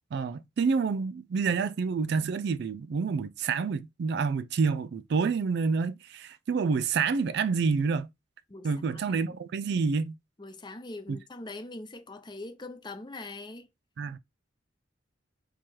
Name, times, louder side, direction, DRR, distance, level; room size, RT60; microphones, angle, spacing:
voice 1, 0.1-8.1 8.6-10.1 11.1-11.2 14.0-14.2, right 5 dB, 55° right, 0.3 m, -28 dB
voice 2, 8.5-9.2 10.4-13.7, left 2 dB, 20° left, 0.6 m, -42 dB
4.6 x 2.3 x 4.4 m
head